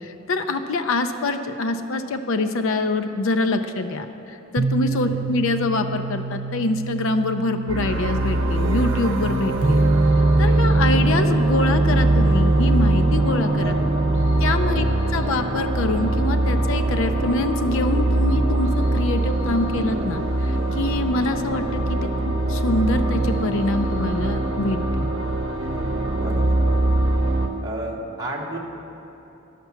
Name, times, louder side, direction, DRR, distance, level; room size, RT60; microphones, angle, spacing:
voice 1, 0.0-9.8 10.4-13.7 14.4-14.9 15.1-22.1 22.5-25.1, left 2 dB, 65° left, 7 dB, 0.5 m, -25 dB
sound 1, 4.6-18.2, right 2 dB, 45° right, 0.4 m, -25 dB
sound 2, 7.7-27.5, right 2 dB, 65° right, 0.8 m, -22 dB
voice 2, 9.6-9.9 13.6-14.0 14.6-14.9 26.1-27.0 27.6-28.6, right 1 dB, 20° right, -3 dB, 1.1 m, -34 dB
10.5 x 5.9 x 7.0 m, 2.9 s
head